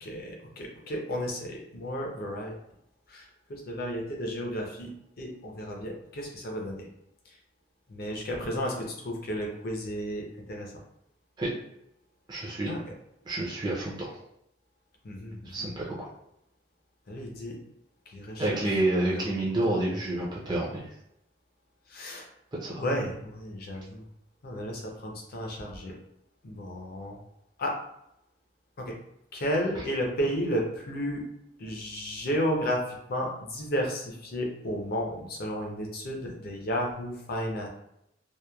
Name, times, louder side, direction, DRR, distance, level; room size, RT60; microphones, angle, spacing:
voice 1, 0.0-2.6 3.1-4.9 5.2-6.9 7.3-7.4 7.9-10.2 10.5-10.7 12.7-12.8 15.0-15.7 17.1-17.6 18.1-18.6 18.9-19.4 21.9-22.3 22.8-24.1 24.4-25.9 26.4-27.2 27.6-27.8 28.8-29.0 29.3-31.2 31.6-37.7, equal, 55° left, 1 dB, 0.6 m, -33 dB
voice 2, 12.3-12.7 13.3-14.2 15.4-16.1 18.4-20.8 22.6-22.8, right 1 dB, 20° right, -5 dB, 0.5 m, -29 dB
2.9 x 2.1 x 2.2 m, 0.82 s
head